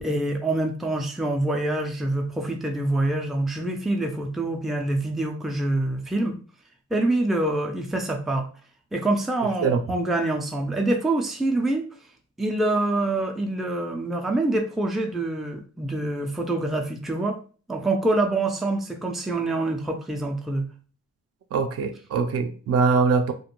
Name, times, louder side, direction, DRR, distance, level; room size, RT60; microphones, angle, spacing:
voice 1, 0.0-6.4 6.9-8.5 8.9-11.9 12.4-17.4 17.7-20.7, right 2 dB, ahead, 0.4 m, -25 dB
voice 2, 21.5-23.3, right 5 dB, 55° right, 0.5 m, -22 dB
2.4 x 2.2 x 2.9 m
cardioid pair, 90°, 30 cm